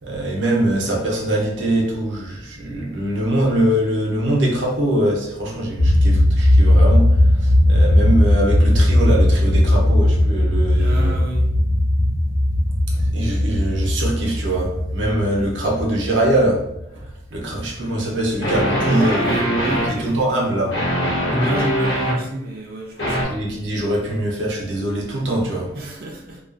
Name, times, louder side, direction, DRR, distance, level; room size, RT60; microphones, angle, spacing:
voice 1, 0.0-11.1 12.9-16.6 16.9-20.8 23.3-25.7, right 1 dB, 85° right, -2 dB, 0.7 m, -23 dB
sound 1, 5.8-17.1, left 1 dB, 50° left, 0.4 m, -17 dB
voice 2, 10.8-11.5 12.2-12.3 18.8-20.8 21.4-23.3 25.7-26.4, right 2 dB, 50° right, 0 dB, 0.3 m, -30 dB
sound 2, 17.6-17.7 18.4-19.9 20.7-22.2 23.0-23.2, equal, 65° left, 0.9 m, -21 dB
2.3 x 2.3 x 2.4 m, 0.87 s
head